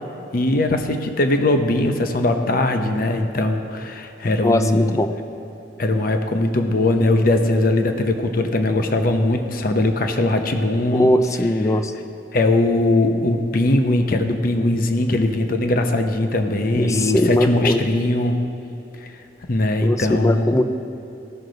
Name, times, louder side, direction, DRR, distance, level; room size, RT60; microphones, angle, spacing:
voice 1, 0.3-5.0 5.8-11.1 12.3-18.4 19.0-19.1 19.5-20.6, left 2 dB, 50° left, 6 dB, 0.7 m, -20 dB
voice 2, 4.4-5.1 10.9-11.9 16.8-17.8 19.8-20.6, left 1 dB, 15° left, 8 dB, 0.4 m, -20 dB
15.5 x 6.2 x 3.9 m, 2.9 s
head